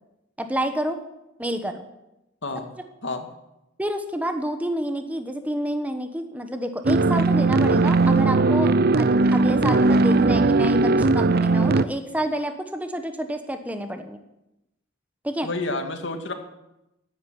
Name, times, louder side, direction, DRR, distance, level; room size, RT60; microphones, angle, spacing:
voice 1, 0.4-1.0 1.4-1.9 3.8-14.2 15.2-15.5, right 1 dB, 10° right, 6 dB, 1.2 m, -29 dB
voice 2, 2.4-2.7 3.0-3.3 15.4-16.3, left 2 dB, 65° left, 5 dB, 2.3 m, -29 dB
sound 1, 6.8-11.8, right 3 dB, 50° right, 0.6 m, -18 dB
14.0 x 10.0 x 9.9 m, 0.91 s
head